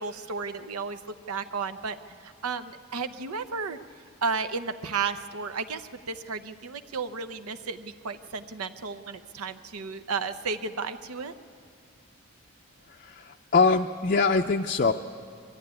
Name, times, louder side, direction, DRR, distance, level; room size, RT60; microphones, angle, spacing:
voice 1, 0.0-3.8 4.2-11.3, right 5 dB, 90° right, 10 dB, 0.8 m, -33 dB
voice 2, 12.9-14.9, left 4 dB, 40° left, 4 dB, 0.4 m, -23 dB
22.0 x 14.0 x 9.7 m, 2.3 s
head